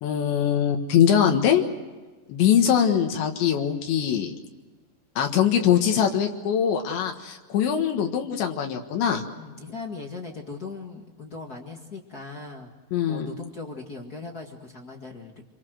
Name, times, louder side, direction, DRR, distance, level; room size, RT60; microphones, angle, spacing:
voice 1, 0.0-1.6 2.3-4.3 5.2-9.2 12.9-13.3, left 9 dB, 80° left, 3 dB, 3.9 m, -22 dB
voice 2, 9.4-12.7 13.1-15.3, left 4 dB, 55° left, 2 dB, 1.0 m, -39 dB
28.0 x 23.5 x 6.3 m, 1.3 s
omnidirectional pair, 5.1 m